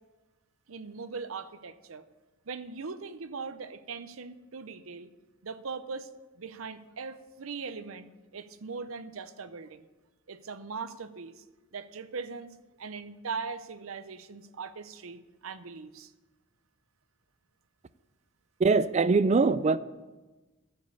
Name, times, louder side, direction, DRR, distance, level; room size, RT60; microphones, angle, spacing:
voice 1, 0.7-2.0 2.5-5.1 5.4-6.1 6.4-9.8 10.3-11.4 11.7-16.1, right 5 dB, 80° right, 0.7 m, -40 dB
voice 2, 18.6-19.8, right 4 dB, 35° right, 0.4 m, -22 dB
12.5 x 5.3 x 8.2 m
head